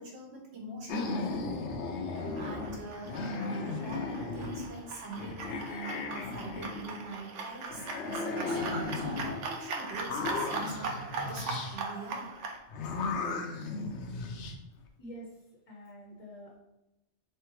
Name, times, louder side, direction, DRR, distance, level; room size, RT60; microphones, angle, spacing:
voice 1, 0.0-1.6 2.3-3.2 3.5-8.6 8.9-11.0 11.2-12.4 14.1-14.3, right 2 dB, 65° right, -1 dB, 1.2 m, -43 dB
sound 1, 0.9-2.8 3.0-4.8 5.1-7.2 7.7-9.4 9.9-11.8 12.7-14.5, left 3 dB, 75° left, 0.9 m, -36 dB
sound 2, 2.1-12.6, right 4 dB, 85° right, 0.9 m, -40 dB
voice 2, 15.0-16.6, equal, 35° left, -4 dB, 0.7 m, -47 dB
3.8 x 3.3 x 3.1 m, 0.94 s
omnidirectional pair, 1.2 m